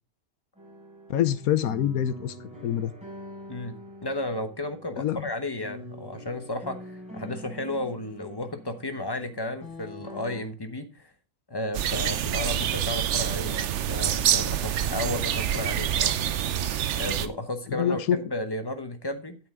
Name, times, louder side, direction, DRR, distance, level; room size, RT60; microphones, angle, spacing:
sound 1, 0.5-10.4, left 1 dB, 5° right, 5.1 m, -45 dB
voice 1, 1.1-2.3 2.6-2.9 5.0-5.2 17.7-18.2, left 10 dB, 75° left, 14 dB, 1.2 m, -25 dB
voice 2, 4.0-11.1 11.5-16.1 16.9-19.4, left 1 dB, 20° left, 8 dB, 0.8 m, -33 dB
sound 2, 11.7-17.3, right 10 dB, 60° right, 0.8 m, -26 dB
9.0 x 7.7 x 3.6 m, 0.32 s
omnidirectional pair, 1.5 m